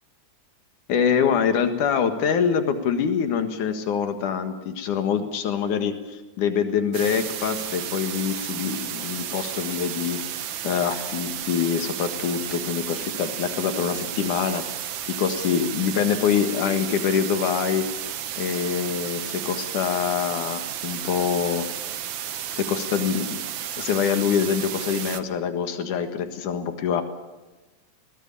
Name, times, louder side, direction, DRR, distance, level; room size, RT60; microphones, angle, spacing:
voice 1, 0.9-10.2 10.6-14.6 15.1-17.9 18.4-21.7 22.5-23.4 23.8-27.0, left 7 dB, 85° left, 7 dB, 3.2 m, -25 dB
sound 1, 6.9-25.2, right 10 dB, 70° right, 1.1 m, -33 dB
22.5 x 18.5 x 8.8 m, 1.1 s
omnidirectional pair, 3.5 m